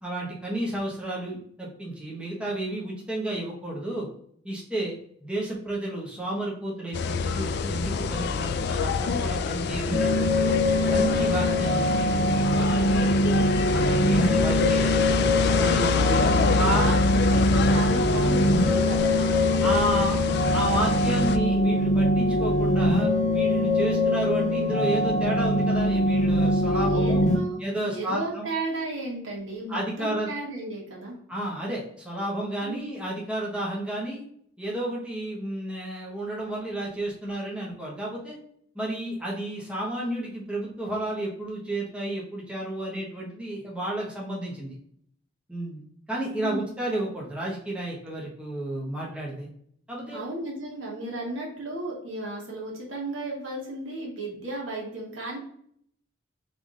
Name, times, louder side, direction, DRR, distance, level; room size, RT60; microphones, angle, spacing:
voice 1, 0.0-4.1 4.4-10.5 10.9-13.4 13.7-15.0 15.5-16.0 16.6-16.8 19.2-19.3 19.6-20.2 20.5-27.2 27.6-28.5 29.7-30.3 31.3-34.2 34.6-38.4 38.7-44.8 45.5-45.8 46.1-49.5 49.9-50.2, right 1 dB, 5° right, -4 dB, 1.2 m, -31 dB
sound 1, 6.9-21.4, left 5 dB, 55° left, 0.3 m, -26 dB
sound 2, 9.9-27.4, left 1 dB, 35° left, 0.8 m, -23 dB
voice 2, 15.7-19.3 26.8-31.2 32.6-32.9 46.4-46.6 50.1-55.4, right 2 dB, 85° right, -2 dB, 1.7 m, -34 dB
3.5 x 3.5 x 3.9 m, 0.66 s
head